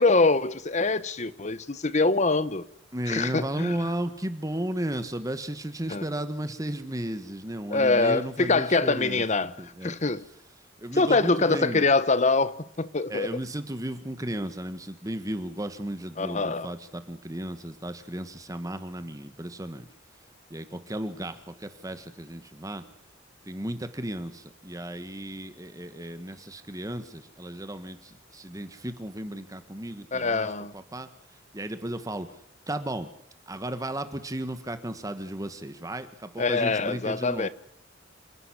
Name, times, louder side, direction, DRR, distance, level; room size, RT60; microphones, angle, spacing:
voice 1, 0.0-2.6 3.1-3.8 5.9-6.0 7.7-9.5 9.8-10.3 11.0-13.3 16.2-16.7 30.1-30.7 36.4-37.5, left 3 dB, 35° left, 1.0 m, -24 dB
voice 2, 2.9-10.0 10.8-11.8 13.1-19.9 20.5-22.8 23.4-31.1 31.5-32.4 32.7-33.1 33.5-37.5, right 1 dB, 15° right, 1.4 m, -34 dB
27.5 x 11.0 x 9.9 m
head